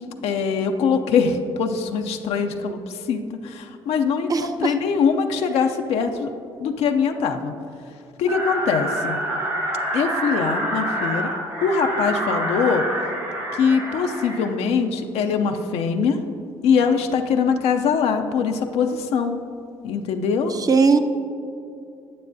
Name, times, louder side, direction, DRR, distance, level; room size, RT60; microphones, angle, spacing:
voice 1, 0.2-6.3 6.6-7.5 8.2-9.2 9.9-11.3 11.6-12.8 13.5-16.2 16.6-19.4 19.8-20.5, left 6 dB, 75° left, 5 dB, 0.5 m, -22 dB
voice 2, 4.3-4.7 20.5-21.0, right 4 dB, 35° right, 9 dB, 0.6 m, -19 dB
sound 1, 8.3-14.5, right 1 dB, 90° right, 1.9 m, -27 dB
9.6 x 8.4 x 2.7 m, 2.6 s
supercardioid pair, 65°, 10 cm